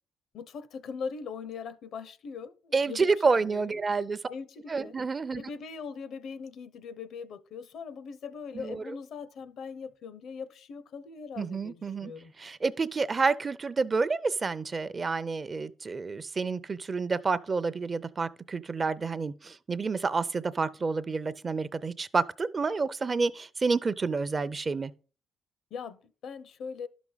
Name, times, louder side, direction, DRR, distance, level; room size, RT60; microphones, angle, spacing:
voice 1, 0.3-3.8 4.3-5.0 5.4-12.3 25.7-26.9, left 5 dB, 70° left, 0.7 m, -41 dB
voice 2, 2.7-4.2 4.7-5.4 8.6-8.8 11.4-12.1 12.4-24.9, right 4 dB, 35° right, 0.5 m, -29 dB
11.5 x 6.0 x 3.9 m
cardioid pair, 90°, 0 cm